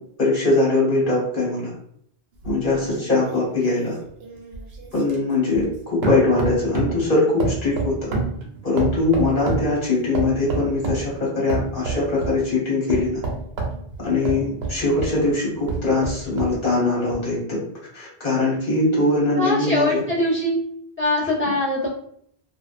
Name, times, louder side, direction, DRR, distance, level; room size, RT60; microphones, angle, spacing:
voice 1, 0.2-1.7 2.4-3.9 4.9-8.1 8.6-13.2 14.0-17.6 17.9-20.0, left 2 dB, 55° left, -5 dB, 1.4 m, -21 dB
sound 1, 2.4-5.8 6.0-7.0 7.4-9.7 10.1-11.1 11.5-12.4 12.9-15.2 15.6-16.6 17.1-17.2, right 3 dB, 90° right, 0.9 m, -28 dB
voice 2, 19.4-20.6 21.0-21.9, left 1 dB, 10° left, -9 dB, 0.9 m, -22 dB
2.5 x 2.2 x 2.4 m, 0.67 s
omnidirectional pair, 1.0 m